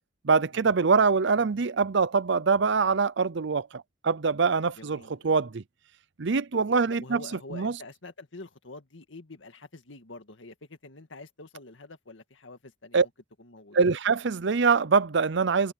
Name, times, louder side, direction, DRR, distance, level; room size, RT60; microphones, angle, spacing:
voice 1, 0.2-5.0 5.2-5.6 6.2-7.2 7.5-7.7 12.9-13.1 13.7-15.7, right 5 dB, 70° right, 0.7 m, -24 dB
voice 2, 4.8-5.4 6.5-6.6 6.9-13.1 13.4-13.8, left 2 dB, 85° left, 1.9 m, -46 dB
head